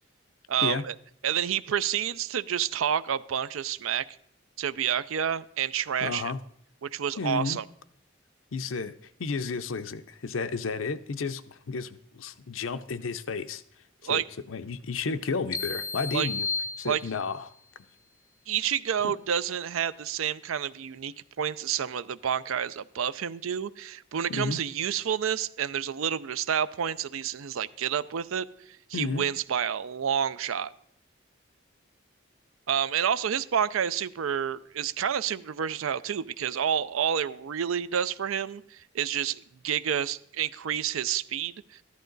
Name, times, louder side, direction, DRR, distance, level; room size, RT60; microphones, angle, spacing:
voice 1, 0.5-0.9 1.2-4.1 4.6-6.3 6.8-7.6 14.0-14.2 16.1-16.3 16.8-17.0 18.5-28.5 28.9-30.7 32.7-41.8, right 8 dB, 90° right, 16 dB, 0.5 m, -29 dB
voice 2, 6.0-6.4 7.2-7.6 8.5-13.6 14.1-14.2 14.5-16.5 16.8-17.5 19.0-19.1 24.3-24.6 28.9-29.2, left 4 dB, 80° left, 12 dB, 0.6 m, -32 dB
sound 1, 15.5-17.5, left 4 dB, 15° left, 0.6 m, -33 dB
13.5 x 11.5 x 3.9 m, 0.69 s
head